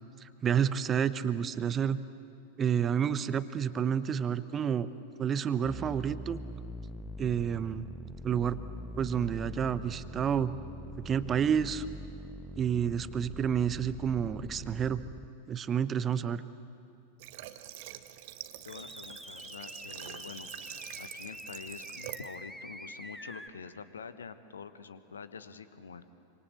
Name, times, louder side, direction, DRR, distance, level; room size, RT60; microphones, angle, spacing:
voice 1, 0.2-2.0 2.6-4.9 5.2-6.4 7.2-7.9 8.2-8.6 9.0-10.5 11.0-11.8 12.6-15.0 15.5-16.4, right 8 dB, 25° right, 15 dB, 0.9 m, -29 dB
sound 1, 5.6-15.3 18.7-23.5, equal, ahead, 1.2 m, -44 dB
Water / Water tap faucet, 17.2-22.3, right 14 dB, 50° right, 1.1 m, -46 dB
voice 2, 18.6-20.5 21.0-26.1, left 6 dB, 70° left, 13 dB, 1.2 m, -46 dB
27.0 x 26.0 x 8.2 m, 2.5 s
figure-of-eight pair, 90°, 0 cm